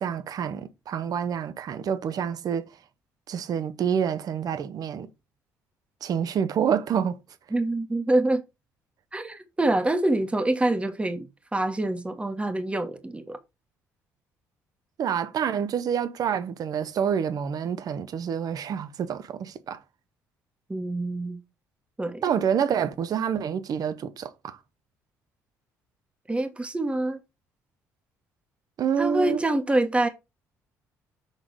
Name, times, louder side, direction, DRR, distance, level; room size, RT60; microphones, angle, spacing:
voice 1, 0.0-2.6 3.3-5.1 6.0-7.2 15.0-19.8 22.2-24.6 28.8-29.4, right 8 dB, 55° right, 0.9 m, -27 dB
voice 2, 7.5-8.4 9.1-13.4 20.7-21.4 22.0-22.2 26.3-27.2 29.0-30.1, right 2 dB, 15° right, 1.3 m, -26 dB
6.6 x 3.7 x 4.7 m
hypercardioid pair, 60°, 8 cm